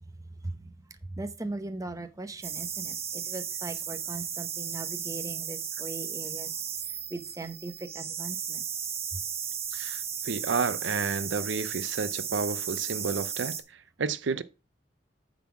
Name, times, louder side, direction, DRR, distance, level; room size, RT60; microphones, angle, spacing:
voice 1, 1.1-6.5 7.1-8.6, right 2 dB, 20° right, 0.9 m, -39 dB
sound 1, 2.4-13.6, right 8 dB, 35° right, 1.2 m, -35 dB
voice 2, 9.7-13.5 14.0-14.4, right 5 dB, 85° right, 0.6 m, -31 dB
9.2 x 4.2 x 5.8 m
head